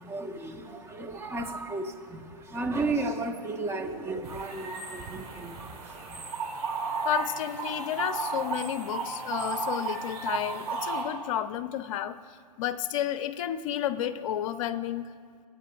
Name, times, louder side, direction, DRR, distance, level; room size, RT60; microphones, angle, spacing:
voice 1, 0.0-6.2, right 2 dB, 10° right, 4 dB, 0.8 m, -34 dB
sound 1, 4.2-11.0, right 4 dB, 60° right, 2.5 m, -34 dB
voice 2, 7.0-12.2 12.6-15.1, left 11 dB, 50° left, 13 dB, 0.6 m, -31 dB
25.5 x 8.9 x 2.3 m, 2.1 s
hypercardioid pair, 115°, 21 cm